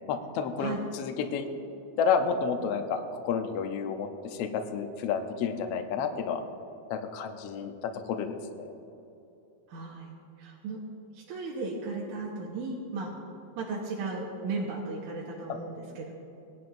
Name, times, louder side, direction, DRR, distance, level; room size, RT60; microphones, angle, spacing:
voice 1, 0.1-1.5 2.0-6.4 6.9-8.7 15.5-15.6, left 6 dB, 80° left, 5 dB, 1.3 m, -30 dB
voice 2, 9.7-10.8 11.1-13.1 13.6-16.1, right 3 dB, 70° right, -4 dB, 2.5 m, -35 dB
19.0 x 11.0 x 2.6 m, 2.9 s
omnidirectional pair, 3.8 m